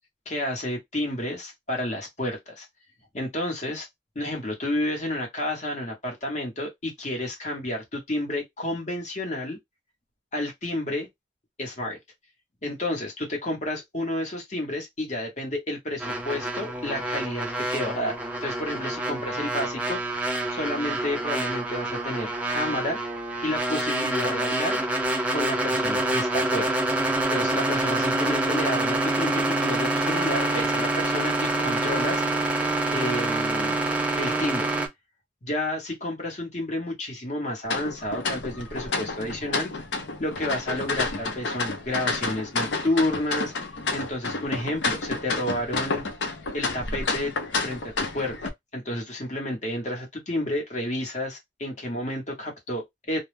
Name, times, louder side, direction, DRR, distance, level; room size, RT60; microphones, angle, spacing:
voice 1, 0.3-2.7 3.1-3.9 4.1-9.6 10.3-11.1 11.6-12.0 12.6-20.0 20.5-23.0 23.4-24.8 25.3-26.8 27.3-32.2 32.9-33.8 34.2-34.7 35.4-39.7 40.2-43.5 43.9-46.0 46.5-47.3 47.6-53.2, left 1 dB, 40° left, 0.9 m, -30 dB
sound 1, 16.0-34.9, right 2 dB, 5° right, 0.4 m, -26 dB
sound 2, 37.7-48.5, left 3 dB, 85° left, 0.6 m, -30 dB
2.2 x 2.0 x 3.1 m
head